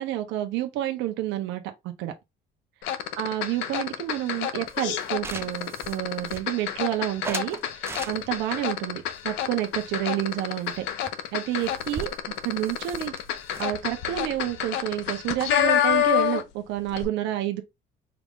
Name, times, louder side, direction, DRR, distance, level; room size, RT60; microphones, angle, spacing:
voice 1, 0.0-1.6 2.0-2.1 3.2-10.9 11.3-12.1 12.4-13.1 13.6-17.6, right 13 dB, 85° right, 0.7 m, -29 dB
sound 1, 2.8-16.6 16.9-17.0, left 10 dB, 80° left, 0.7 m, -28 dB
sound 2, 4.7-6.8 7.2-8.5 9.1-10.4 10.6-10.8 11.1-11.2 11.4-15.2, right 4 dB, 15° right, 0.3 m, -41 dB
4.8 x 2.4 x 3.6 m
cardioid pair, 175°, 18 cm